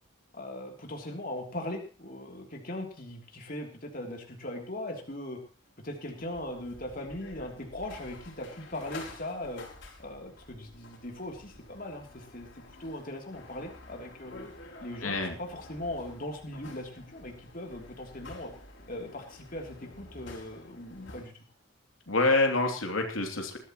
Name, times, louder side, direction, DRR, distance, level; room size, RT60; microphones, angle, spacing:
voice 1, 0.3-5.4 5.8-9.6 10.0-12.5 12.8-14.5 14.8-18.5 18.9-21.3, left 1 dB, 45° left, 2 dB, 3.3 m, -39 dB
sound 1, 5.7-21.2, left 2 dB, 60° left, 5.2 m, -50 dB
voice 2, 15.0-15.3 22.1-23.6, left 2 dB, 80° left, 3 dB, 3.0 m, -26 dB
21.0 x 13.5 x 3.1 m, 0.38 s
head